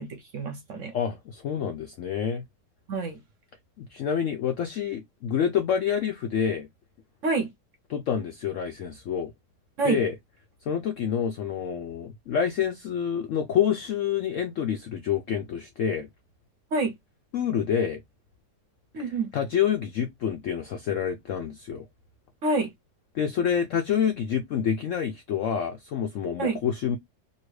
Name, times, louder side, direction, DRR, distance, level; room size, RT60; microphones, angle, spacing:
voice 1, 0.0-0.9 2.9-3.2 7.2-7.5 9.8-10.0 16.7-16.9 18.9-19.3 22.4-22.7 26.4-26.6, right 3 dB, 60° right, 0.9 m, -27 dB
voice 2, 0.9-2.4 3.8-6.7 7.9-9.3 9.8-10.2 10.7-16.1 17.3-18.0 19.0-21.8 23.1-27.0, left 8 dB, 75° left, 0.7 m, -27 dB
2.8 x 2.8 x 3.0 m
omnidirectional pair, 1.8 m